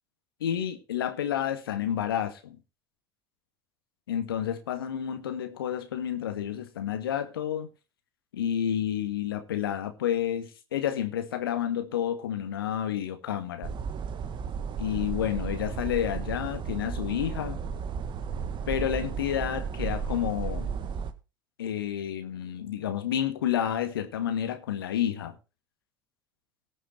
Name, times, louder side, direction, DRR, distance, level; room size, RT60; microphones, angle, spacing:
voice 1, 0.4-2.6 4.1-7.7 8.3-13.7 14.8-17.6 18.7-20.7 21.6-25.3, left 10 dB, 75° left, 1.8 m, -30 dB
sound 1, 13.6-21.1, right 6 dB, 40° right, 1.5 m, -34 dB
18.5 x 6.2 x 4.3 m
figure-of-eight pair, 65°, 12 cm